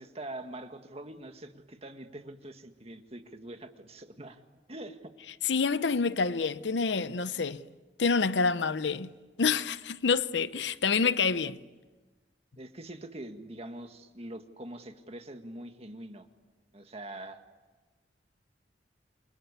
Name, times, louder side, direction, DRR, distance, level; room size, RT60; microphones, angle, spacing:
voice 1, 0.0-4.4 4.7-5.1 12.6-16.3 16.7-17.4, right 1 dB, 35° right, 1.8 m, -44 dB
voice 2, 5.4-7.6 8.0-9.1 9.4-11.6, left 5 dB, 80° left, 0.8 m, -27 dB
28.5 x 23.5 x 8.3 m
head